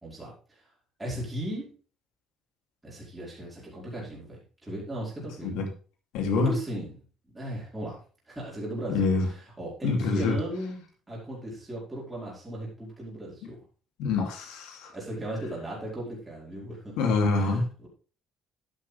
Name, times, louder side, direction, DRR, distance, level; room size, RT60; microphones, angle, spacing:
voice 1, 0.0-0.6 1.0-1.7 2.8-5.5 6.3-7.0 7.3-8.0 8.3-13.6 14.9-16.9 17.3-17.9, right 1 dB, 10° right, 4.8 m, -37 dB
voice 2, 6.1-6.6 8.9-9.3 9.8-10.4 14.0-14.9 17.0-17.7, left 3 dB, 90° left, 2.8 m, -26 dB
11.5 x 8.6 x 3.4 m
cardioid pair, 170°, 0 cm